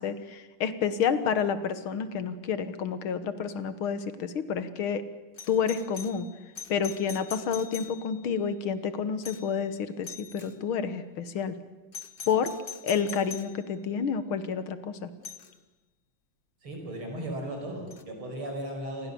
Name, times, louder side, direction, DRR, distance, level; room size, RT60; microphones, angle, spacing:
voice 1, 0.0-5.0 5.5-6.3 6.7-11.6 12.3-12.5 12.8-15.1, left 7 dB, 80° left, 12 dB, 2.1 m, -29 dB
Doorbell, 5.4-8.3 9.2-9.6 10.0-10.6 11.9-13.6 15.2-15.5 17.9-18.0, left 6 dB, 35° left, 1.0 m, -43 dB
voice 2, 16.6-19.1, right 1 dB, 85° right, 2 dB, 6.4 m, -36 dB
28.5 x 20.5 x 6.9 m, 1.2 s
omnidirectional pair, 2.3 m